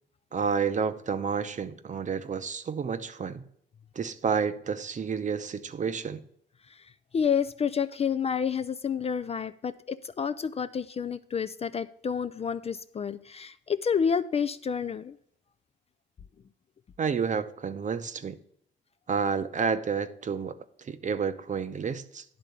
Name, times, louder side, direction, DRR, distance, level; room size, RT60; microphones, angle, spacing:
voice 1, 0.3-3.4 4.0-6.2 17.0-18.4 19.1-22.2, right 6 dB, 40° right, 11 dB, 0.7 m, -30 dB
voice 2, 7.1-15.2, left 7 dB, 30° left, 12 dB, 0.3 m, -29 dB
10.5 x 3.6 x 6.7 m, 0.67 s
cardioid pair, 90°, 20 cm